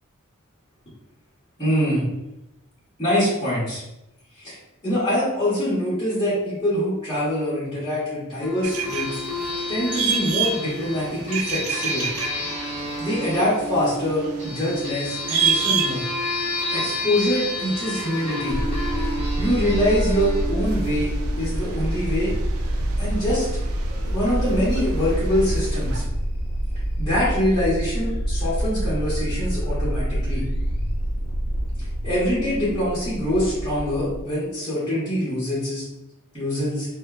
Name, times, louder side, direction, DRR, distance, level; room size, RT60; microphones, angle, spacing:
voice 1, 1.6-2.0 3.0-3.8 4.4-4.6 4.8-9.4 9.7-12.1 13.0-16.0 16.7-18.6 19.4-21.1 21.4-22.3 23.0-23.5 24.0-26.0 27.0-30.4 32.0-35.8 36.3-36.9, equal, 20° left, -14 dB, 1.1 m, -24 dB
sound 1, 8.4-21.6, left 1 dB, 30° right, 1.0 m, -31 dB
sound 2, 8.6-26.1, right 6 dB, 85° right, 0.3 m, -31 dB
sound 3, 18.5-34.2, equal, 45° left, 0.3 m, -26 dB
2.9 x 2.2 x 2.3 m, 0.90 s
head